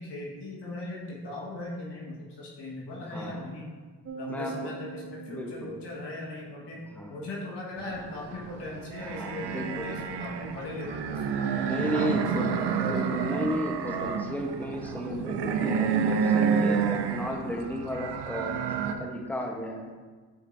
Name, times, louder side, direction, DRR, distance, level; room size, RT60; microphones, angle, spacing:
voice 1, 0.0-3.7 4.1-6.8 7.1-13.1, left 2 dB, 80° left, -4 dB, 1.6 m, -39 dB
voice 2, 3.0-3.4 4.3-4.7 5.3-5.8 6.9-7.2 9.1-9.9 11.6-12.5 12.8-18.6 19.0-19.9, equal, 5° left, 1 dB, 1.0 m, -33 dB
sound 1, 4.0-6.6, right 5 dB, 35° right, 0.6 m, -43 dB
sound 2, 7.8-18.9, right 6 dB, 75° right, 0.6 m, -29 dB
9.0 x 4.3 x 2.6 m, 1.4 s
supercardioid pair, 45°, 41 cm